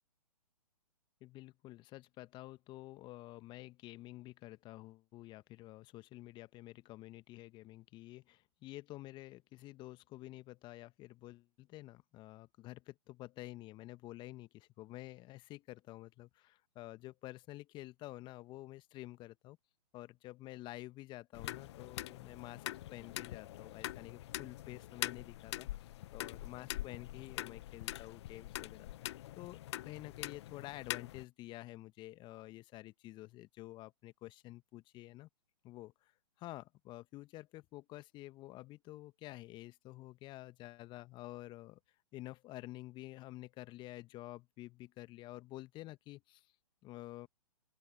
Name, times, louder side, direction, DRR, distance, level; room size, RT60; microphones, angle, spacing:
voice 1, 1.2-19.6 19.9-22.6 22.9-25.7 26.1-35.3 35.6-35.9 36.4-41.8 42.1-46.5 46.8-47.3, left 17 dB, 20° left, 1.3 m, -50 dB
sound 1, 21.3-31.2, left 14 dB, 40° left, 0.9 m, -44 dB
open air
figure-of-eight pair, 125°, 21 cm